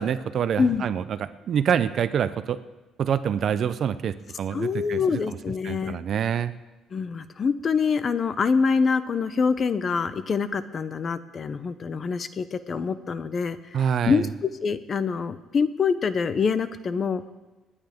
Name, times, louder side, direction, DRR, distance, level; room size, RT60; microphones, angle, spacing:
voice 1, 0.0-2.6 3.0-5.2 5.6-6.5 13.7-14.3, right 8 dB, 45° right, 13 dB, 0.6 m, -26 dB
voice 2, 4.5-6.0 6.9-13.6 14.1-17.2, left 5 dB, 35° left, 13 dB, 0.6 m, -25 dB
27.5 x 9.8 x 3.6 m, 1.1 s
cardioid pair, 145°, 0 cm